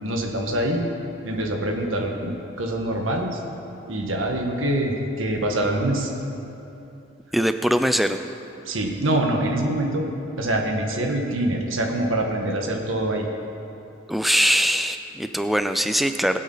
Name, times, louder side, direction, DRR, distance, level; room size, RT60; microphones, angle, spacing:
voice 1, 0.0-0.9 1.2-3.4 3.9-6.1 8.6-10.0 10.4-13.3, right 1 dB, 85° right, 2 dB, 1.6 m, -25 dB
voice 2, 7.3-8.2 14.1-16.4, equal, ahead, 8 dB, 0.4 m, -21 dB
21.0 x 8.3 x 4.0 m, 2.8 s
head